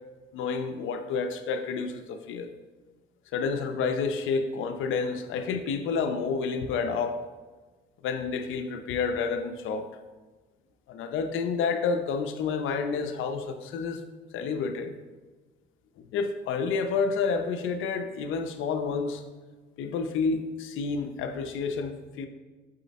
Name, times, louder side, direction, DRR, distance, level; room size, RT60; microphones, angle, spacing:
voice 1, 0.3-2.5 3.3-7.2 8.0-9.9 10.9-14.0 14.3-14.9 16.0-19.2 19.8-22.3, left 5 dB, 85° left, 8 dB, 0.7 m, -29 dB
7.6 x 4.2 x 4.2 m, 1.3 s
cardioid pair, 90°, 20 cm